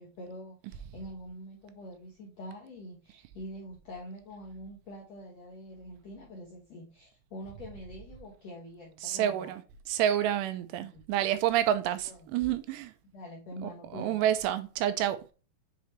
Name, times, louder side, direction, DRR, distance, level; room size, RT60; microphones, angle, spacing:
voice 1, 0.0-9.6 10.8-11.0 12.0-12.3 13.1-14.2, equal, 75° left, 1.5 m, -45 dB
voice 2, 9.0-12.9 13.6-15.2, right 11 dB, 90° right, 2.8 m, -29 dB
7.2 x 4.2 x 3.2 m
omnidirectional pair, 4.9 m